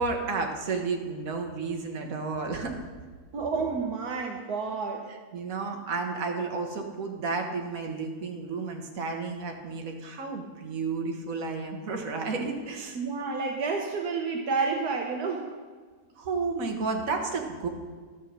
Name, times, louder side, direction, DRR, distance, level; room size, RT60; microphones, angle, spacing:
voice 1, 0.0-2.8 5.3-13.0 16.2-17.7, right 4 dB, 60° right, 3 dB, 1.7 m, -32 dB
voice 2, 3.3-5.1 12.9-15.5, right 4 dB, 75° right, 2 dB, 1.5 m, -30 dB
11.5 x 6.3 x 7.4 m, 1.5 s
omnidirectional pair, 1.6 m